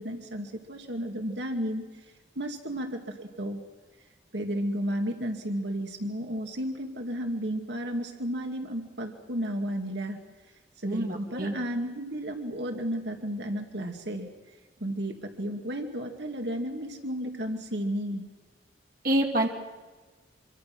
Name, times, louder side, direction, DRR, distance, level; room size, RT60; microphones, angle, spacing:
voice 1, 0.0-1.8 2.4-3.6 4.3-10.2 10.8-14.3 14.8-18.3, equal, 70° right, 3 dB, 2.4 m, -33 dB
voice 2, 10.8-11.5 19.0-19.5, right 1 dB, 50° right, 1 dB, 2.4 m, -26 dB
25.5 x 24.5 x 6.2 m, 1.3 s
head